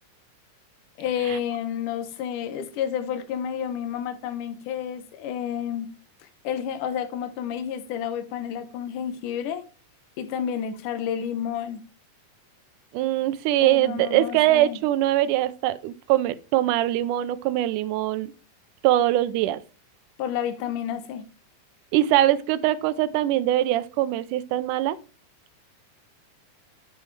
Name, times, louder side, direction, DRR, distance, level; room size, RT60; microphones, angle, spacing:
voice 1, 1.0-5.9 6.4-9.6 10.2-11.8 13.6-14.8 20.2-21.2, left 9 dB, 85° left, 2.5 m, -30 dB
voice 2, 12.9-18.3 18.8-19.6 21.9-25.0, right 14 dB, 85° right, 2.2 m, -22 dB
9.1 x 7.3 x 3.2 m
omnidirectional pair, 3.5 m